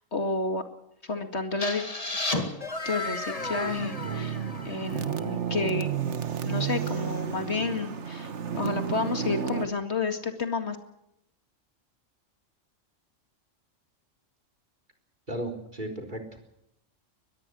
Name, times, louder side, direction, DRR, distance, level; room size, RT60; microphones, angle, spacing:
voice 1, 0.1-0.6 1.0-1.8 2.9-4.4 4.6-5.9 6.4-10.8, left 3 dB, 60° left, 7 dB, 2.4 m, -30 dB
sound 1, 1.6-5.3, left 2 dB, 30° left, 2.3 m, -33 dB
sound 2, 3.3-9.7, right 8 dB, 65° right, 1.5 m, -32 dB
voice 2, 15.3-16.5, right 1 dB, 40° right, 3 dB, 4.3 m, -35 dB
23.0 x 20.5 x 6.3 m, 0.80 s
omnidirectional pair, 1.3 m